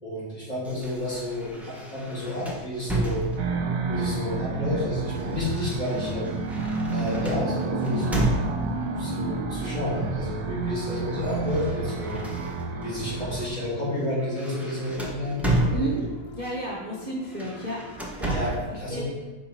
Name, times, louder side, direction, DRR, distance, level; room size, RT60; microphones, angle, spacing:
voice 1, 0.0-3.3 3.9-6.4 6.9-8.2 9.0-12.2 12.8-16.0 18.3-18.5 18.8-19.1, left 1 dB, 25° left, -8 dB, 2.3 m, -30 dB
sound 1, 0.6-3.7 4.7-8.9 9.9-10.3 10.6-12.9 13.4-13.6 13.9-16.3 17.2-18.7, right 1 dB, ahead, 0.5 m, -32 dB
sound 2, 3.4-13.5, right 3 dB, 70° right, 1.2 m, -30 dB
sound 3, 9.3-10.7 11.1-17.9, left 3 dB, 60° left, 1.1 m, -45 dB
voice 2, 15.7-16.1 16.3-17.8 18.2-18.3 18.7-19.1, right 1 dB, 35° right, -5 dB, 0.8 m, -32 dB
5.6 x 4.8 x 4.2 m, 1.2 s
omnidirectional pair, 1.8 m